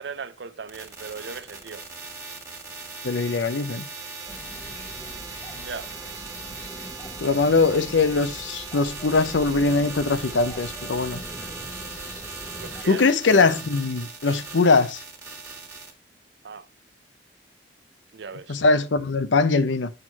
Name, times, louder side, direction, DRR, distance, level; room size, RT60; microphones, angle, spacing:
voice 1, 0.0-1.9 5.5-5.9 12.6-13.1 16.4-16.7 18.1-18.6, right 5 dB, 70° right, 0.5 m, -37 dB
sound 1, 0.7-15.9, right 4 dB, 15° right, 1.6 m, -39 dB
voice 2, 3.0-3.9 7.2-11.2 12.9-15.0 18.5-19.9, left 3 dB, 90° left, 0.7 m, -21 dB
sound 2, 4.3-12.8, equal, 15° left, 0.8 m, -42 dB
6.7 x 6.2 x 4.1 m
head